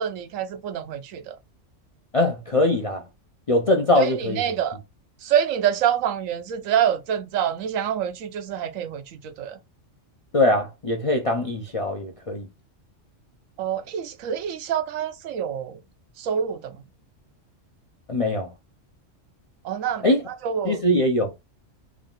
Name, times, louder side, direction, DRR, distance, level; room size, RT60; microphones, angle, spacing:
voice 1, 0.0-1.4 3.9-4.8 5.2-9.6 13.6-15.8 16.2-16.8 19.6-20.8, right 9 dB, 85° right, 1.0 m, -26 dB
voice 2, 2.1-3.0 3.5-4.4 10.3-12.5 18.1-18.5 20.0-20.2 20.6-21.3, left 1 dB, 45° left, 0.4 m, -22 dB
3.6 x 2.3 x 3.7 m
omnidirectional pair, 1.3 m